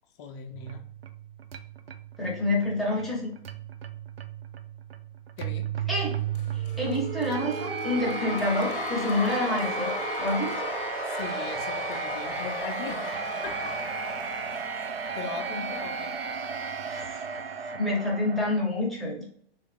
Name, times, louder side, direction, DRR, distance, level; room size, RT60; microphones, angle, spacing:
voice 1, 0.2-0.8 5.4-5.7 11.1-13.7 14.8-14.9 15.1-16.1, left 5 dB, 30° left, 4 dB, 0.6 m, -39 dB
sound 1, 0.5-18.6, right 6 dB, 80° right, 0.5 m, -34 dB
voice 2, 2.2-3.3 5.9-6.1 6.5-9.9 10.2-10.7 16.9-17.2 17.7-19.3, left 2 dB, ahead, -4 dB, 1.0 m, -28 dB
sound 2, 6.3-14.6, left 6 dB, 60° left, 0.8 m, -38 dB
3.6 x 3.2 x 3.5 m, 0.62 s
figure-of-eight pair, 120°, 29 cm